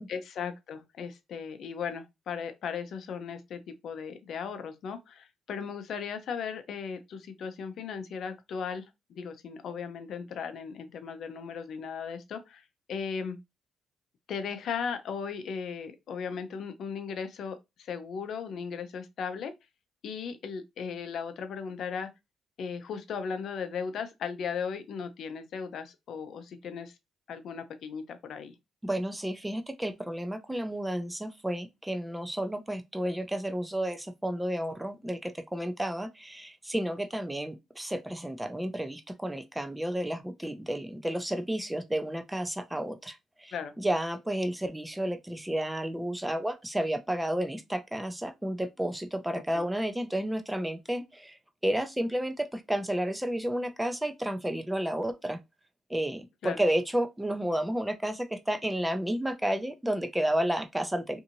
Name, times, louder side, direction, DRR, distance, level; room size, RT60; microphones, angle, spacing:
voice 1, 0.1-13.4 14.3-19.5 20.0-22.1 22.6-26.9 27.3-28.6 43.5-43.7 49.5-49.7 56.4-56.6, left 6 dB, 65° left, 0.6 m, -37 dB
voice 2, 28.8-55.4 55.9-61.2, right 1 dB, 10° right, 0.5 m, -31 dB
2.6 x 2.5 x 2.8 m
cardioid pair, 90°, 0 cm